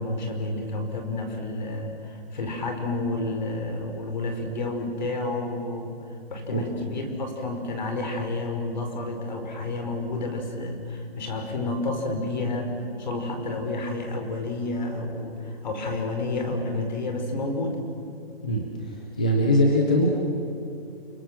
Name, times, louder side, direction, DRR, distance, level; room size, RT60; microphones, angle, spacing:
voice 1, 0.0-5.9 6.3-17.8, left 2 dB, 45° left, 5 dB, 5.0 m, -30 dB
voice 2, 18.4-20.1, left 1 dB, 10° left, 0 dB, 0.5 m, -22 dB
29.5 x 22.5 x 7.5 m, 2.7 s
hypercardioid pair, 175°, 31 cm